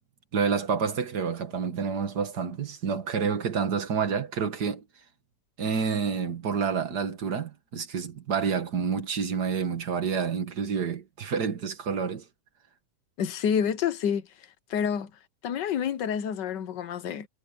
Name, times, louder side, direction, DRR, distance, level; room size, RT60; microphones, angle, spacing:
voice 1, 0.3-4.8 5.6-12.2, right 6 dB, 65° right, 2.2 m, -28 dB
voice 2, 13.2-14.3 14.7-15.1 15.4-17.3, left 8 dB, 85° left, 1.7 m, -28 dB
omnidirectional pair, 1.9 m